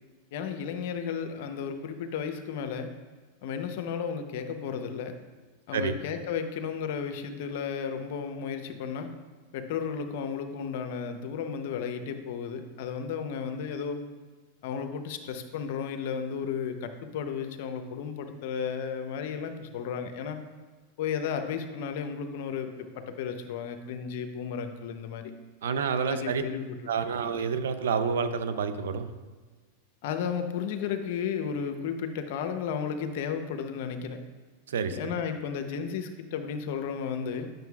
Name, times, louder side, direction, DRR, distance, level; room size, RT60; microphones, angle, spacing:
voice 1, 0.3-2.9 3.4-5.1 5.7-9.1 9.5-14.0 14.6-20.4 21.0-25.3 26.1-27.2 30.0-34.2 34.9-37.5, left 7 dB, 65° left, 7 dB, 0.7 m, -33 dB
voice 2, 25.6-26.4 26.9-29.1 34.7-35.1, right 6 dB, 85° right, 10 dB, 0.5 m, -29 dB
9.1 x 6.5 x 2.3 m, 1.4 s
hypercardioid pair, 120°, 0 cm